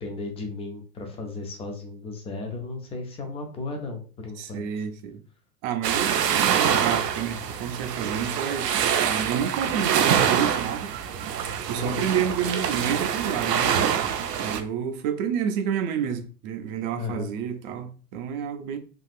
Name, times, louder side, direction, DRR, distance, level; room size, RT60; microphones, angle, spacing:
voice 1, 0.0-4.8 11.8-12.0 17.0-17.3, left 3 dB, 15° left, 0.4 m, -35 dB
voice 2, 4.4-5.2 5.6-10.9 11.7-13.7 14.4-18.8, right 8 dB, 40° right, 0.5 m, -29 dB
sound 1, 5.8-14.6, right 8 dB, 80° right, 0.6 m, -25 dB
3.6 x 2.4 x 2.4 m
hypercardioid pair, 105°, 48 cm